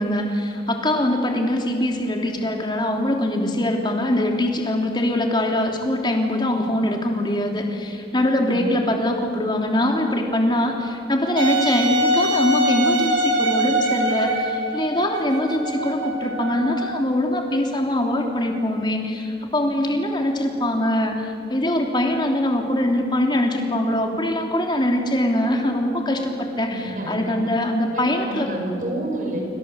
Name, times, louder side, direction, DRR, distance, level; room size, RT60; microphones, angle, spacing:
voice 1, 0.0-28.5, left 1 dB, 25° left, 2 dB, 3.2 m, -23 dB
voice 2, 8.4-8.8 26.7-27.4 27.9-29.4, right 1 dB, 45° right, 1 dB, 5.8 m, -29 dB
Wind instrument woodwind instrument, 11.4-17.0, right 1 dB, 80° right, 4.0 m, -23 dB
27.5 x 25.0 x 8.0 m, 2.4 s
head